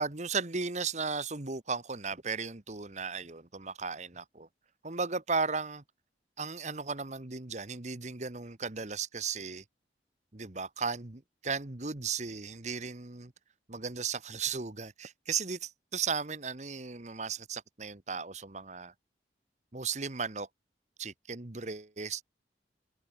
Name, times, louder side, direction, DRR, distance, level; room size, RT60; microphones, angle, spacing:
voice 1, 0.0-4.5 4.8-5.8 6.4-9.6 10.3-13.3 13.7-18.9 19.7-20.5 21.0-22.2, right 5 dB, 40° right, 1.4 m, -35 dB
head